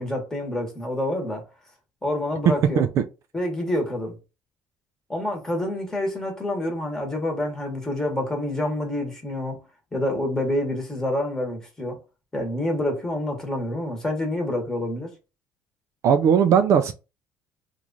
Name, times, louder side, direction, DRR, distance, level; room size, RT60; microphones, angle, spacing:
voice 1, 0.0-1.4 2.0-2.9 3.3-4.2 5.1-9.6 9.9-12.0 12.3-15.1, left 1 dB, 10° left, 1.1 m, -27 dB
voice 2, 16.0-16.9, right 7 dB, 50° right, 0.3 m, -18 dB
3.1 x 2.3 x 3.8 m
cardioid pair, 145°, 7 cm